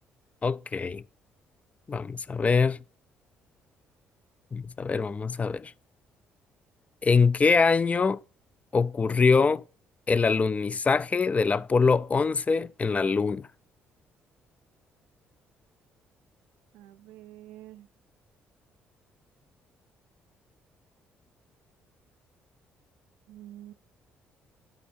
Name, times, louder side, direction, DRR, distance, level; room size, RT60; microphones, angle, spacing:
voice 1, 0.4-1.0 1.9-2.8 4.5-5.7 7.0-8.2 8.7-9.6 10.1-13.5, left 4 dB, 30° left, 0.4 m, -24 dB
voice 2, 16.7-17.9 23.3-23.7, right 13 dB, 85° right, 0.4 m, -47 dB
11.0 x 4.1 x 5.4 m
supercardioid pair, 60°, 5 cm